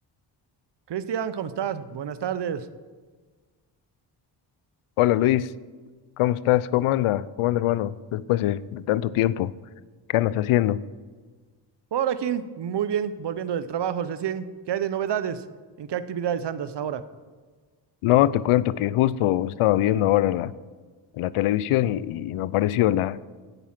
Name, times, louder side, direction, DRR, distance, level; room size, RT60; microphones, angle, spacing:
voice 1, 0.9-2.7 11.9-15.4 15.8-17.0, right 9 dB, 55° right, 14 dB, 0.8 m, -28 dB
voice 2, 5.0-5.5 6.2-9.5 10.1-10.8 18.0-20.5 21.1-23.2, left 14 dB, 80° left, 19 dB, 0.6 m, -22 dB
11.0 x 8.6 x 5.8 m, 1.4 s
cardioid pair, 60°, 50 cm